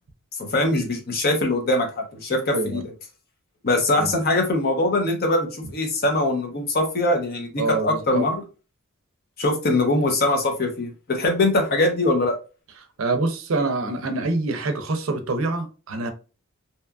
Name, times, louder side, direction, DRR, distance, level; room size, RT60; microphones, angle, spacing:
voice 1, 0.4-2.8 3.6-8.4 9.4-12.3, left 2 dB, 45° left, 0.6 m, -22 dB
voice 2, 7.6-8.2 13.0-16.1, right 3 dB, 75° right, 0.5 m, -25 dB
2.8 x 2.3 x 2.2 m
head